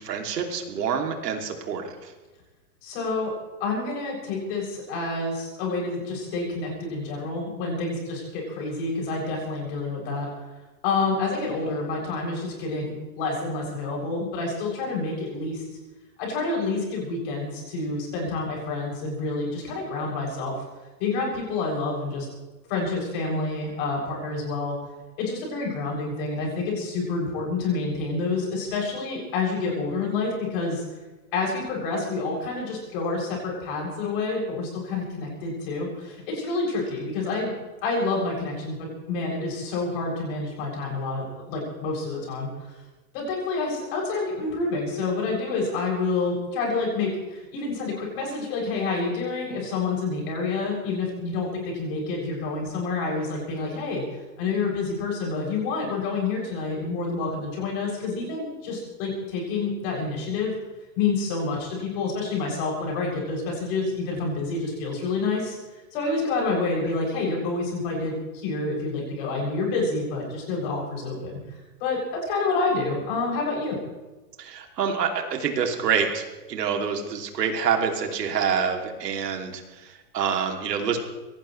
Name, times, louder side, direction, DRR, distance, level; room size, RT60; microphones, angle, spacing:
voice 1, 0.0-2.1 74.4-81.0, right 6 dB, 80° right, 3 dB, 2.9 m, -27 dB
voice 2, 2.8-3.3 3.6-10.3 10.8-15.6 16.2-20.5 21.0-22.3 22.7-24.8 25.2-30.8 31.3-37.5 37.8-42.5 43.1-54.0 54.4-60.6 61.0-65.6 65.9-71.4 71.8-73.8, left 3 dB, 35° left, -2 dB, 7.4 m, -28 dB
23.5 x 18.5 x 3.3 m, 1.2 s
supercardioid pair, 170°, 48 cm